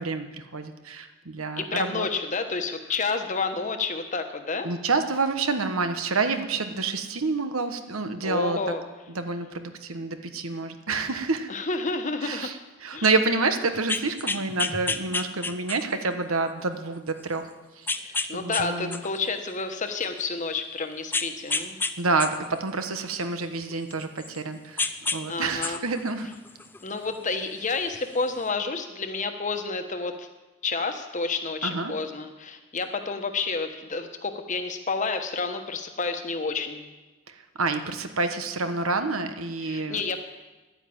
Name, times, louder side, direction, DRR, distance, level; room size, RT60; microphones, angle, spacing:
voice 1, 0.0-2.1 4.6-8.6 9.1-11.5 12.2-17.9 18.3-19.0 22.0-26.3 31.6-31.9 37.3-40.0, right 3 dB, 80° right, 8 dB, 1.3 m, -28 dB
voice 2, 1.6-4.7 8.2-8.8 11.5-12.5 12.9-13.1 18.0-21.8 25.3-25.8 26.8-30.3 30.6-36.8 39.6-40.2, left 4 dB, 35° left, 7 dB, 1.2 m, -30 dB
sound 1, 13.7-16.0 16.6-16.7 17.9-18.6 18.9-20.2 21.1-21.9 22.2-24.4 24.8-25.2 25.5-26.9 27.9-28.0, left 3 dB, 10° left, 0.5 m, -30 dB
11.5 x 9.7 x 8.7 m, 1.2 s
head